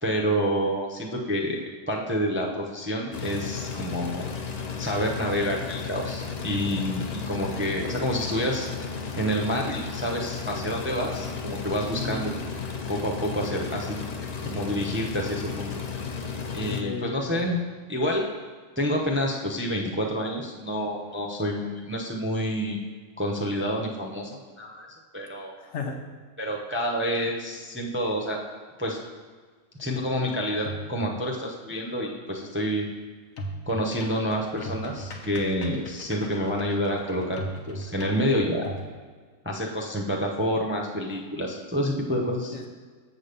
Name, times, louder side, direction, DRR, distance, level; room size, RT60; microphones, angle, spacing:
voice 1, 0.0-4.2 4.8-8.7 9.2-12.3 12.9-14.0 14.4-15.7 16.5-17.6 17.9-18.2 18.8-22.8 23.2-24.9 25.1-25.5 26.4-28.4 28.8-29.0 29.8-32.9 33.7-38.8 39.4-42.5, equal, 10° right, -1 dB, 0.6 m, -28 dB
sound 1, 3.1-16.8, left 5 dB, 50° left, 0.5 m, -34 dB
voice 2, 12.0-12.3 16.7-17.4 25.6-26.0 42.0-42.1 42.5-42.7, left 4 dB, 65° left, 2 dB, 1.2 m, -35 dB
sound 2, 30.3-31.4 33.4-38.9, equal, 85° left, 1.4 m, -39 dB
7.5 x 4.0 x 6.7 m, 1.6 s
omnidirectional pair, 1.4 m